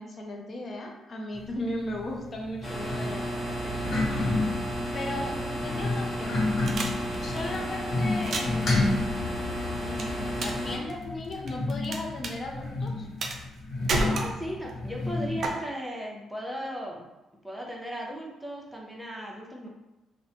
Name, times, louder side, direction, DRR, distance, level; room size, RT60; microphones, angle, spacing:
voice 1, 0.0-4.4 4.9-6.8 7.2-9.0 9.8-13.1, left 1 dB, 40° left, 1 dB, 0.6 m, -37 dB
sound 1, 1.3-15.5, left 2 dB, 65° left, 0.9 m, -31 dB
sound 2, 2.6-10.8, right 1 dB, 10° left, 1.2 m, -33 dB
sound 3, 6.7-7.6 8.1-8.6 10.0-10.6 10.9-12.0 12.2-12.3 13.2-13.6 13.9-14.7 15.4-15.5, right 3 dB, 55° right, 0.4 m, -30 dB
voice 2, 14.0-17.1 17.4-19.7, equal, 5° right, -2 dB, 0.6 m, -36 dB
3.0 x 2.1 x 2.8 m, 1.0 s
cardioid pair, 90°, 0 cm